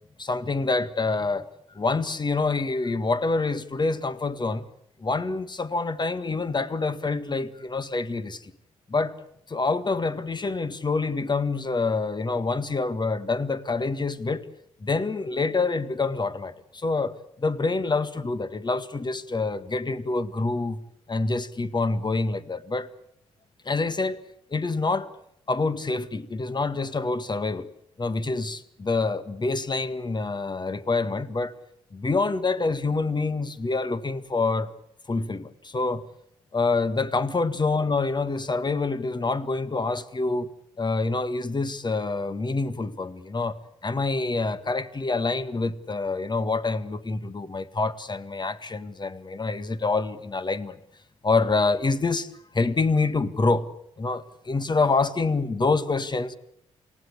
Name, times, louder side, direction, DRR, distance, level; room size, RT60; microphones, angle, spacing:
voice 1, 0.2-1.5 1.7-4.7 5.0-8.5 8.9-9.2 9.5-14.4 14.8-20.8 21.1-22.9 23.7-24.2 24.5-25.1 25.5-27.7 28.0-31.6 31.9-34.7 35.1-36.1 36.5-43.6 43.8-50.8 51.2-53.7 54.0-56.4, left 3 dB, 30° left, 1.8 m, -26 dB
28.5 x 16.5 x 8.5 m
figure-of-eight pair, 40°, 15 cm